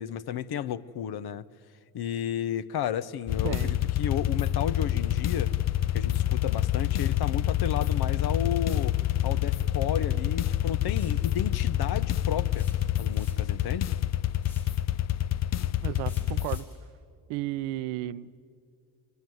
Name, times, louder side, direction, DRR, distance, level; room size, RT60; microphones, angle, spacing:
voice 1, 0.0-1.5 1.9-5.5 5.9-12.7 13.0-13.9, left 9 dB, 55° left, 1.0 m, -33 dB
sound 1, 3.3-16.6, left 12 dB, 35° left, 0.6 m, -27 dB
voice 2, 3.4-3.8 15.8-16.7 17.3-18.4, right 15 dB, 75° right, 0.9 m, -33 dB
sound 2, 10.9-11.2 12.5-13.6 14.4-14.8 16.1-16.8, left 5 dB, 80° left, 5.7 m, -52 dB
25.0 x 22.5 x 9.4 m
supercardioid pair, 70°, 46 cm